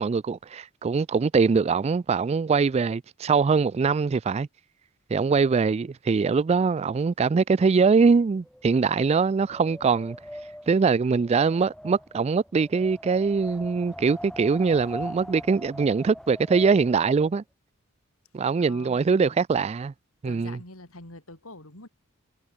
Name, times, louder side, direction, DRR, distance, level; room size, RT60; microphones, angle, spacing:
voice 1, 0.0-4.5 5.1-10.2 10.7-17.4 18.3-19.9 20.2-20.6, right 5 dB, 30° right, 0.3 m, -23 dB
Wind, 8.2-17.4, equal, ahead, 4.1 m, -42 dB
voice 2, 18.6-19.4 20.2-21.9, left 2 dB, 85° left, 5.7 m, -45 dB
head